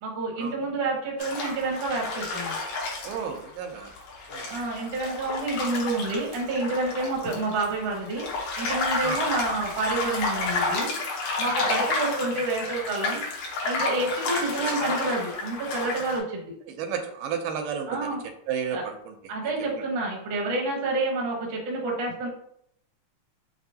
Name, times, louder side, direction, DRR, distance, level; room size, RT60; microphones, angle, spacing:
voice 1, 0.0-2.6 4.5-8.2 8.6-10.9 11.4-13.2 13.6-16.5 17.9-18.2 18.7-18.8 19.3-22.3, right 2 dB, 65° right, -2 dB, 1.2 m, -29 dB
sound 1, 1.2-16.2, left 3 dB, 75° left, 2.3 m, -31 dB
voice 2, 3.0-3.9 4.3-4.5 9.0-9.3 11.6-11.8 16.7-18.2 18.5-19.2 19.4-19.8, right 7 dB, 85° right, 5 dB, 2.2 m, -32 dB
6.1 x 2.6 x 2.7 m, 0.71 s
omnidirectional pair, 3.7 m